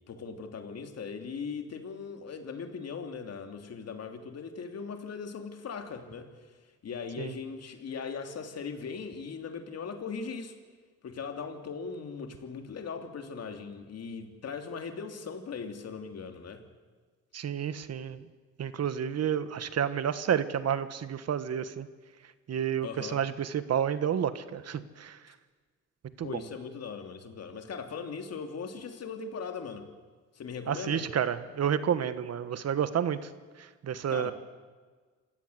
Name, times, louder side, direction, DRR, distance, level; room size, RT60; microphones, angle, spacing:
voice 1, 0.1-6.3 6.8-10.6 11.0-16.7 22.8-23.2 26.2-29.9 30.3-31.1 34.1-34.3, left 5 dB, 55° left, 6 dB, 3.0 m, -39 dB
voice 2, 17.3-18.2 18.6-21.9 22.5-25.2 26.2-26.3 30.7-33.2 33.8-34.3, right 8 dB, 55° right, 12 dB, 1.4 m, -30 dB
27.0 x 17.0 x 8.0 m, 1.5 s
cardioid pair, 90°, 30 cm